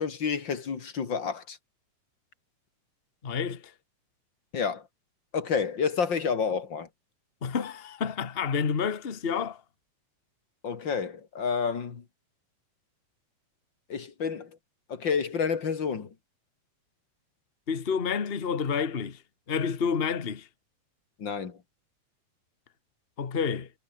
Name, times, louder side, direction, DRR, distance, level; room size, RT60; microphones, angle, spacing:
voice 1, 0.0-1.6 4.5-4.9 5.3-6.9 10.6-12.0 13.9-14.6 14.9-16.1 21.2-21.6, left 6 dB, 40° left, 2.6 m, -29 dB
voice 2, 3.2-3.7 7.4-9.6 17.7-19.2 19.5-20.5 23.2-23.7, left 6 dB, 75° left, 0.5 m, -29 dB
omnidirectional pair, 3.6 m